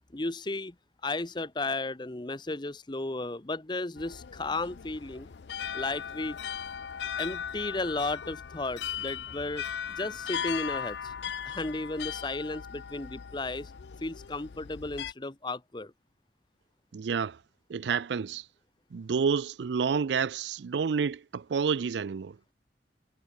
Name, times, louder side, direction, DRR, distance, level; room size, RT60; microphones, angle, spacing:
voice 1, 0.1-0.7 1.0-5.3 5.7-6.4 7.2-11.1 11.5-13.7 14.0-15.9, left 2 dB, 25° left, 0.9 m, -34 dB
sound 1, 4.0-15.1, left 8 dB, 75° left, 0.5 m, -38 dB
voice 2, 16.9-17.4 17.7-18.4 18.9-22.4, right 6 dB, 80° right, 0.4 m, -29 dB
head